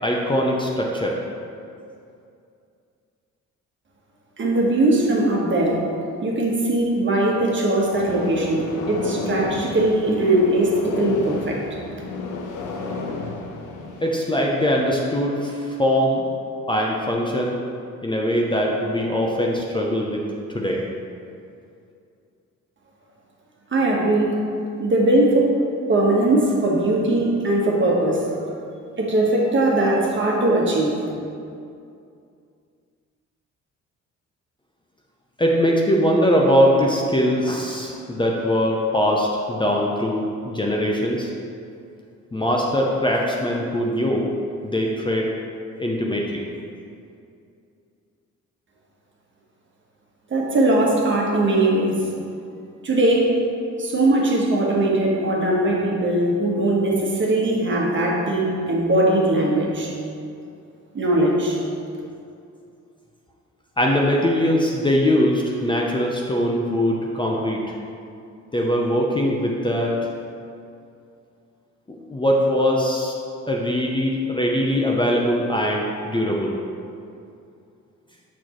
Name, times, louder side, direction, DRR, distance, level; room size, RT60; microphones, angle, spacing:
voice 1, 0.0-1.2 14.0-16.3 16.7-17.6 18.0-20.2 20.5-20.8 35.4-41.3 42.3-44.3 44.6-45.3 45.8-46.4 63.8-67.7 68.5-70.1 71.9-73.1 73.5-76.5, equal, 15° left, -2 dB, 0.6 m, -21 dB
voice 2, 4.4-5.8 6.2-11.6 23.7-24.4 24.8-25.5 25.9-28.2 29.0-31.0 50.3-51.9 52.8-53.3 53.8-59.9 60.9-61.6, right 1 dB, 40° right, -2 dB, 1.3 m, -20 dB
sound 1, 7.9-14.3, left 3 dB, 80° left, 0.7 m, -31 dB
6.4 x 6.0 x 3.0 m, 2.5 s
cardioid pair, 90°, 30 cm